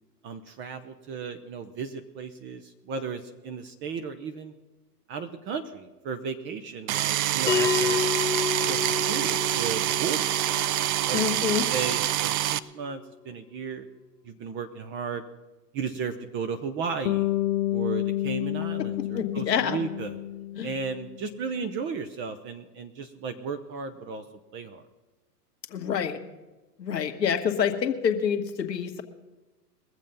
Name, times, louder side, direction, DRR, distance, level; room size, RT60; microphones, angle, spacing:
voice 1, 0.2-4.5 5.1-8.0 8.6-11.2 11.7-13.8 14.2-15.2 15.7-17.3 17.7-20.2 20.6-24.2 24.5-24.8, right 5 dB, 25° right, 8 dB, 0.7 m, -35 dB
sound 1, 6.9-12.6, right 13 dB, 60° right, 0.6 m, -26 dB
Bell, 7.5-12.5, left 6 dB, 10° left, 0.4 m, -31 dB
voice 2, 11.1-11.7 19.1-19.8 20.5-20.7 25.7-26.2 26.8-29.0, left 7 dB, 85° left, 6 dB, 1.5 m, -27 dB
Bass guitar, 17.0-21.3, left 15 dB, 55° left, 0.6 m, -29 dB
21.5 x 7.5 x 5.4 m, 1.1 s
hypercardioid pair, 120°, 48 cm